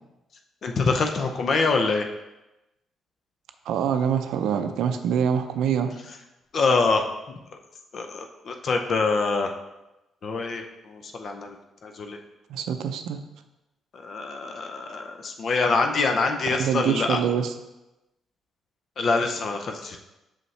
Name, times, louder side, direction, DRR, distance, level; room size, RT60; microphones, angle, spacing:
voice 1, 0.6-2.1 6.5-7.0 7.9-9.5 10.2-11.6 11.8-12.2 13.9-17.2 19.0-20.0, left 4 dB, 55° left, 4 dB, 0.6 m, -25 dB
voice 2, 3.7-5.9 12.5-13.2 16.4-17.5, right 8 dB, 85° right, 8 dB, 0.4 m, -25 dB
5.7 x 5.3 x 3.2 m, 0.97 s
cardioid pair, 90°, 0 cm